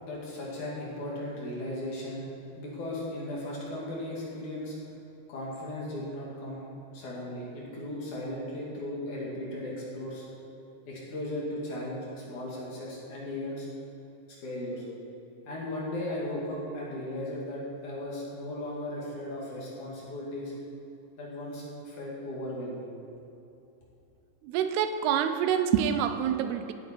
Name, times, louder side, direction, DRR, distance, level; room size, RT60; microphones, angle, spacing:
voice 1, 0.0-2.3 2.6-4.8 5.3-6.7 6.9-10.3 10.9-13.7 14.3-14.8 15.5-20.5 21.2-22.9, left 1 dB, 50° left, -5 dB, 3.3 m, -36 dB
voice 2, 24.4-26.7, right 9 dB, 85° right, 9 dB, 2.6 m, -26 dB
16.0 x 9.2 x 4.5 m, 2.8 s
omnidirectional pair, 4.8 m